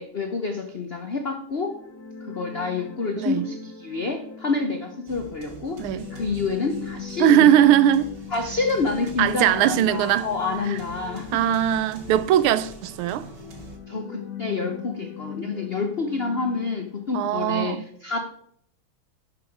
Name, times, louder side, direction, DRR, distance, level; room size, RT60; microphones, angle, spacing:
voice 1, 0.0-1.7 2.2-7.5 8.3-11.4 13.9-18.2, left 4 dB, 80° left, 0.5 m, -28 dB
sound 1, 1.5-17.2, left 7 dB, 50° left, 1.7 m, -40 dB
voice 2, 3.2-3.5 5.8-6.1 7.2-8.1 9.2-10.3 10.7-10.8 11.3-13.3 17.1-17.9, right 11 dB, 80° right, 1.5 m, -20 dB
sound 2, 5.1-13.8, right 3 dB, 55° right, 2.0 m, -45 dB
11.0 x 6.7 x 4.7 m
omnidirectional pair, 2.4 m